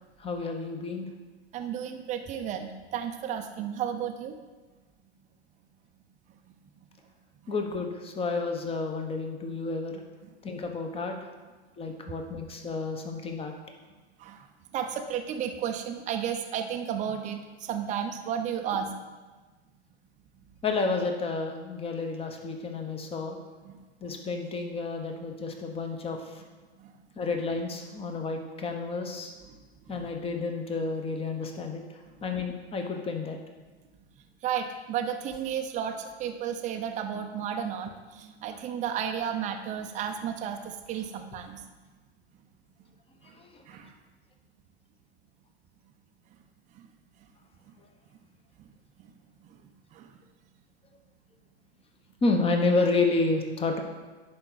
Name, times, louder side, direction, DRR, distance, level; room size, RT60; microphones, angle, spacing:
voice 1, 0.2-1.1 7.5-10.0 10.4-11.2 11.8-13.5 20.6-23.4 24.0-26.4 27.2-29.3 29.9-31.8 32.2-33.4 43.4-43.5 52.2-53.8, left 3 dB, 15° left, 4 dB, 1.0 m, -30 dB
voice 2, 1.5-4.3 7.5-7.6 14.2-14.5 14.7-18.9 23.6-23.7 24.1-24.2 26.8-26.9 29.5-29.6 30.0-30.1 34.4-41.6 43.2-43.3 43.7-43.9 46.7-46.9 48.6-48.7 49.0-49.1 49.9-50.1, right 8 dB, 20° right, 5 dB, 0.6 m, -33 dB
10.5 x 4.6 x 4.0 m, 1.3 s
hypercardioid pair, 120°, 34 cm